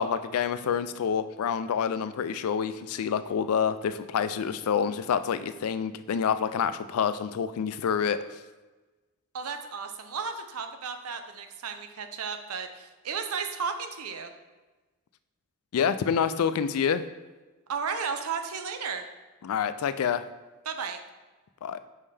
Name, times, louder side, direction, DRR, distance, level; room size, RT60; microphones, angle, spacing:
voice 1, 0.0-8.2 15.7-17.0 19.4-20.3 21.6-21.8, left 7 dB, 80° left, 13 dB, 0.3 m, -27 dB
voice 2, 9.3-14.3 17.7-19.1 20.7-21.0, right 5 dB, 85° right, 7 dB, 0.6 m, -34 dB
5.4 x 5.4 x 3.3 m, 1.2 s
head